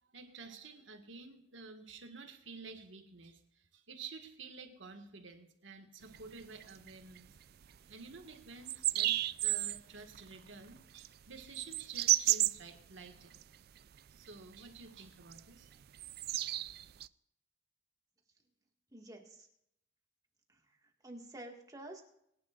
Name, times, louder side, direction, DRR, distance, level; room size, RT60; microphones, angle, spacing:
voice 1, 0.0-7.3 7.9-13.4 14.2-15.7, right 4 dB, 75° right, 5 dB, 1.8 m, -51 dB
sound 1, 6.0-7.4 7.6-7.8 8.1-8.2 8.6-9.8 10.1-13.4 13.8-14.3 14.5-14.8 15.2-17.1, right 15 dB, 50° right, 0.3 m, -32 dB
voice 2, 18.9-19.5 21.0-22.0, right 1 dB, 20° right, 2 dB, 1.9 m, -49 dB
22.5 x 10.5 x 2.5 m, 0.76 s
head